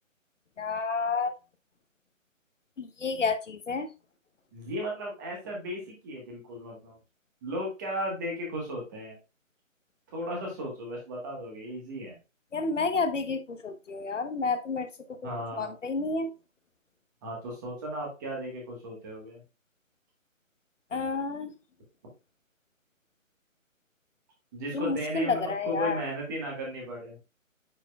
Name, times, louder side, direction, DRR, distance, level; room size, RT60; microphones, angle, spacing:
voice 1, 0.6-1.3 2.8-3.9 12.5-16.3 20.9-21.5 24.7-26.0, left 4 dB, 65° left, 1.0 m, -30 dB
voice 2, 4.5-6.9 7.4-9.2 10.1-12.2 15.2-15.7 17.2-19.4 24.5-27.2, equal, 15° right, 1.3 m, -35 dB
8.9 x 4.6 x 2.3 m
figure-of-eight pair, 160°, 40 cm